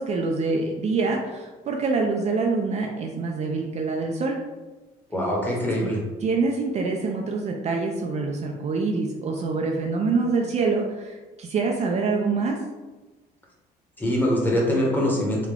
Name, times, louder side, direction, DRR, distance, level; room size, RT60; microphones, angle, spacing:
voice 1, 0.0-4.4 5.8-5.9 6.2-12.6, right 4 dB, 40° right, 1 dB, 0.4 m, -25 dB
voice 2, 5.1-6.0 14.0-15.5, equal, 10° left, -3 dB, 1.0 m, -23 dB
3.7 x 2.2 x 3.3 m, 1.2 s
cardioid pair, 110°, 17 cm